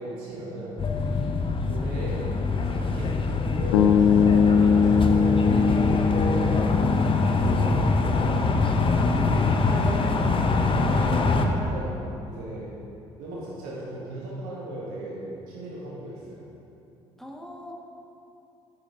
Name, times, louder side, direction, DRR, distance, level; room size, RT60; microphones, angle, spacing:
voice 1, 0.0-1.3 1.7-2.2 2.6-6.7 7.2-7.7 8.0-8.4 9.6-10.0 10.3-12.7 13.2-16.5, right 1 dB, 65° right, -6 dB, 1.3 m, -37 dB
sound 1, 0.8-11.5, left 3 dB, 35° left, 0.8 m, -24 dB
sound 2, 3.7-7.9, left 6 dB, 75° left, 0.5 m, -21 dB
voice 2, 9.0-10.2 17.2-17.7, equal, ahead, -1 dB, 1.4 m, -37 dB
9.8 x 6.4 x 3.7 m, 2.8 s
figure-of-eight pair, 50°, 15 cm